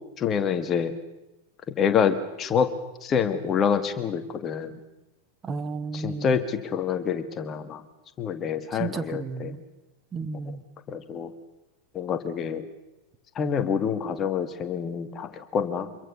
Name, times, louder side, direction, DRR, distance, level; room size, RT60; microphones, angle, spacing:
voice 1, 0.2-0.9 1.8-2.7 3.0-4.8 5.9-7.9 8.2-9.6 10.9-11.3 11.9-12.7 13.4-15.9, left 7 dB, 25° left, 10 dB, 1.9 m, -27 dB
voice 2, 5.4-6.4 8.7-9.6 10.1-10.6, right 4 dB, 20° right, 11 dB, 1.3 m, -33 dB
26.5 x 22.0 x 6.8 m, 0.98 s
figure-of-eight pair, 90°, 0 cm